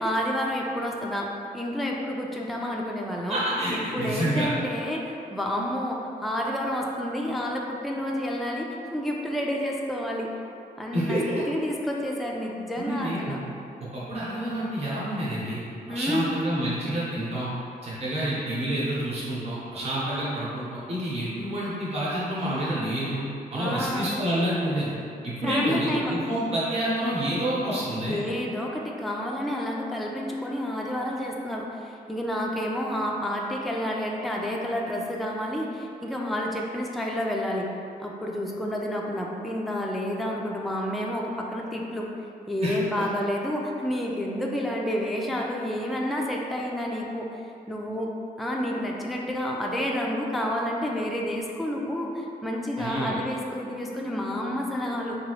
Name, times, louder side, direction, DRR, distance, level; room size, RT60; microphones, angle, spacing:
voice 1, 0.0-3.4 3.7-10.3 10.8-11.2 11.5-13.4 15.9-16.4 23.6-24.1 25.4-26.2 28.1-37.7 38.0-42.1 42.5-47.3 47.7-48.1 48.4-55.2, equal, ahead, -2 dB, 0.3 m, -29 dB
voice 2, 3.3-4.5 10.9-11.4 12.8-13.4 13.8-15.6 15.9-17.5 17.8-23.2 23.5-24.9 25.2-28.2 42.6-43.0 52.8-53.2, right 1 dB, 40° right, -8 dB, 0.9 m, -28 dB
2.9 x 2.7 x 2.9 m, 2.5 s
cardioid pair, 90°, 16 cm